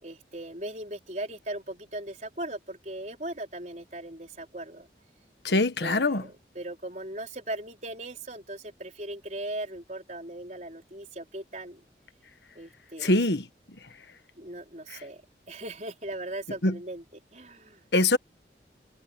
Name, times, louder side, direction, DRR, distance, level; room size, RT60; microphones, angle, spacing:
voice 1, 0.0-4.9 5.5-11.8 12.5-13.2 14.4-15.2 15.5-17.0 17.3-17.8, right 1 dB, 40° right, 4.8 m, -38 dB
voice 2, 5.4-6.2 13.0-13.4 14.9-15.0 16.6-16.8 17.9-18.2, left 2 dB, 80° left, 1.5 m, -23 dB
head